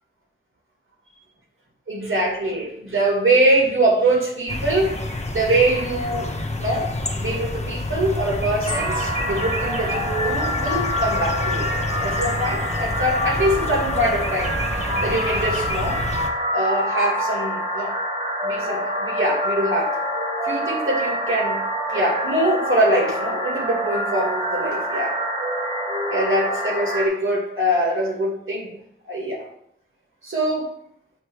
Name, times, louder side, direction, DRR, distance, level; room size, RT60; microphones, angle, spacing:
voice 1, 1.9-4.9 5.3-6.3 6.6-11.7 12.0-16.0 16.5-17.9 18.4-20.0 20.4-21.6 21.9-25.2 26.1-28.7 29.1-29.4 30.2-30.7, right 1 dB, 85° right, -2 dB, 2.2 m, -23 dB
sound 1, 4.5-16.3, left 1 dB, 35° left, 1.0 m, -28 dB
sound 2, 8.6-27.1, equal, 35° right, 2.1 m, -26 dB
7.7 x 3.1 x 6.1 m, 0.73 s
wide cardioid pair, 55°, 20 cm